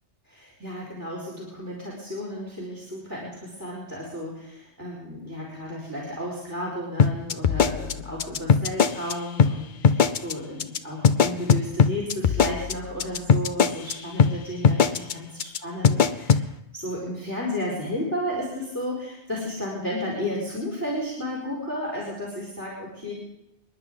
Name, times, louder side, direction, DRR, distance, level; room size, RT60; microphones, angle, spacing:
voice 1, 0.3-15.3 15.6-16.4 16.7-23.1, left 1 dB, 20° right, -3 dB, 4.4 m, -33 dB
sound 1, 7.0-9.1 9.4-9.5 9.8-10.3 10.6-10.8 11.0-13.9 14.2-14.3 14.6-15.1 15.4-15.6 15.8-16.4, left 6 dB, 50° left, 0.7 m, -19 dB
29.0 x 10.5 x 3.7 m, 0.90 s
omnidirectional pair, 1.1 m